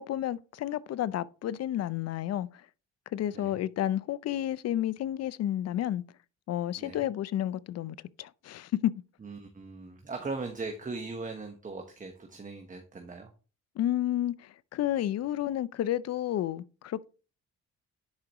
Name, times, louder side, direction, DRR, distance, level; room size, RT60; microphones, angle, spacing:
voice 1, 0.0-2.6 3.1-6.0 6.5-8.9 13.8-17.1, left 12 dB, 55° left, 0.5 m, -31 dB
voice 2, 9.2-13.3, right 3 dB, 25° right, 1.2 m, -39 dB
10.5 x 4.8 x 3.0 m
cardioid pair, 90°, 30 cm